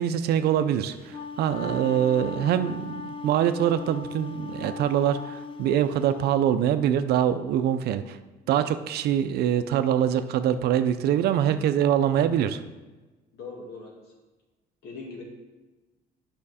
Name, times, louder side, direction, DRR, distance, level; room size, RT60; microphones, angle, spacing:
voice 1, 0.0-8.2 8.5-12.6, right 10 dB, 70° right, 11 dB, 0.5 m, -24 dB
Wind instrument woodwind instrument, 0.9-6.3, left 4 dB, 30° left, 0.4 m, -38 dB
voice 2, 13.3-14.1 14.8-15.2, left 4 dB, 75° left, -1 dB, 2.2 m, -40 dB
8.7 x 5.8 x 4.2 m, 1.2 s
cardioid pair, 110°, 17 cm